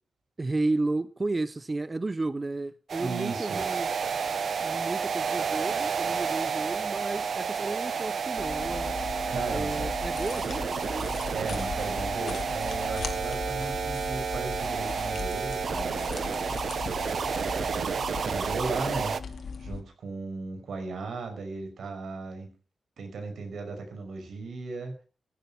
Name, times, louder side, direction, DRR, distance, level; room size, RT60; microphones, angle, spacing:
voice 1, 0.4-3.9 4.6-8.9 9.5-11.1, right 2 dB, 25° right, 0.7 m, -32 dB
sound 1, 2.9-19.2, right 6 dB, 60° right, 0.9 m, -31 dB
voice 2, 3.0-3.6 9.3-9.9 11.3-22.5 23.0-24.9, right 3 dB, 85° right, 5.6 m, -37 dB
sound 2, 8.4-19.8, left 5 dB, 65° left, 2.4 m, -38 dB
16.0 x 10.5 x 5.8 m
wide cardioid pair, 155°, 0 cm